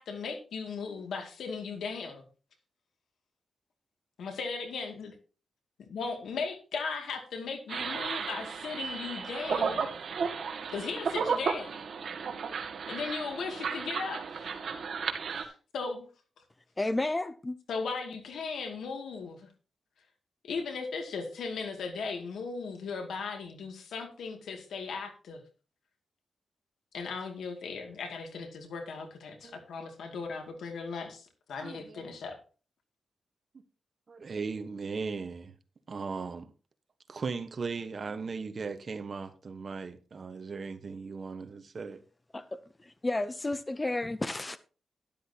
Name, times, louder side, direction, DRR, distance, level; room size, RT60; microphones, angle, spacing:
voice 1, 0.0-2.2 4.2-5.1 5.9-9.9 10.7-11.8 12.9-14.5 15.4-16.1 17.7-19.5 20.4-25.4 26.9-32.4, left 4 dB, 90° left, 2.3 m, -37 dB
sound 1, 7.7-15.4, right 6 dB, 65° right, 1.8 m, -34 dB
voice 2, 16.8-17.6 42.3-44.6, left 2 dB, 20° left, 0.5 m, -32 dB
voice 3, 31.6-32.2 34.1-35.5 35.9-36.5 37.1-42.0, right 4 dB, 45° right, 1.1 m, -38 dB
12.5 x 11.5 x 2.9 m
wide cardioid pair, 125°, 0 cm